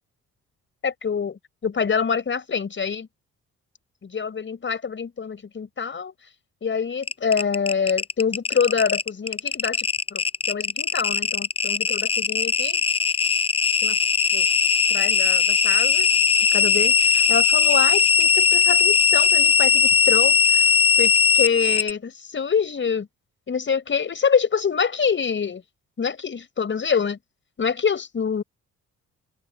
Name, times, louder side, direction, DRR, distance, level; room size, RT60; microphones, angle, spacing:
voice 1, 0.8-3.1 4.0-6.1 6.6-12.8 13.8-14.0 14.3-14.5 14.9-16.1 16.5-23.1 23.5-25.6 26.0-27.2 27.6-28.4, left 6 dB, 40° left, 5.5 m, -26 dB
sound 1, 7.0-21.9, left 6 dB, 20° left, 0.4 m, -19 dB
open air
cardioid pair, 90°, 30 cm